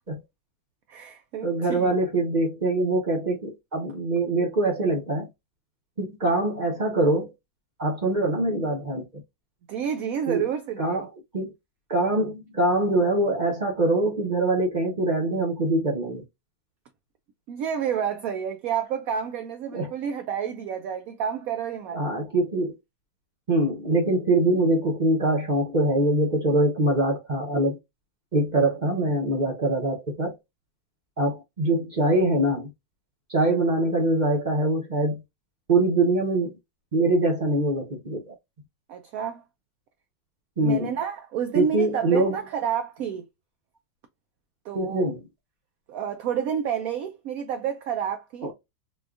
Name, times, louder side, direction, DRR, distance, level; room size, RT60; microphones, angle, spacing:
voice 1, 0.9-1.9 9.7-11.1 17.5-22.0 38.9-39.4 40.6-43.3 44.6-45.1 45.9-48.5, right 8 dB, 75° right, 0.8 m, -29 dB
voice 2, 1.4-5.3 6.0-7.3 7.8-9.0 10.3-10.4 10.8-11.1 11.3-11.5 11.9-16.2 19.7-19.9 21.9-22.7 23.5-27.8 28.3-30.4 31.2-32.7 33.3-35.2 35.7-36.6 36.9-38.3 40.6-40.9 41.5-42.4 44.7-45.2 48.4-48.5, right 2 dB, 45° right, 0.6 m, -23 dB
4.3 x 2.3 x 2.3 m
omnidirectional pair, 2.0 m